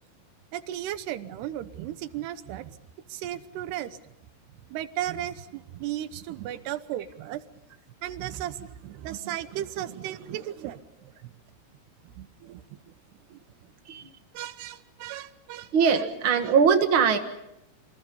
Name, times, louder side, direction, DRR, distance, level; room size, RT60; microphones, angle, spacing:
voice 1, 0.5-2.8 3.1-4.0 4.7-7.4 8.0-11.3 12.0-12.9 13.3-13.4 14.3-16.5, right 12 dB, 80° right, 12 dB, 3.1 m, -36 dB
voice 2, 15.7-17.2, right 6 dB, 50° right, 6 dB, 1.6 m, -21 dB
27.0 x 25.0 x 5.5 m, 0.85 s
omnidirectional pair, 4.7 m